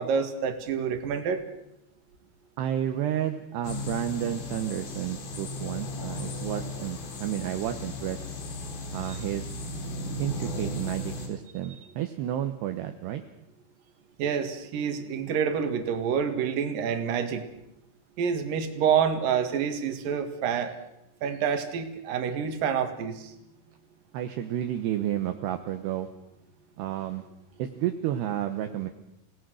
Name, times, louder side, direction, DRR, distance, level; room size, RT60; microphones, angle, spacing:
voice 1, 0.0-1.4 14.2-17.4 18.2-20.8 21.2-23.3, right 7 dB, 55° right, 7 dB, 2.9 m, -27 dB
voice 2, 2.6-8.2 8.9-9.5 10.2-13.2 24.1-26.1 26.8-27.3 27.6-28.9, right 11 dB, 75° right, 6 dB, 2.7 m, -31 dB
sound 1, 3.6-11.3, left 2 dB, 80° left, 6.4 m, -36 dB
29.5 x 18.5 x 6.4 m, 0.86 s
omnidirectional pair, 5.9 m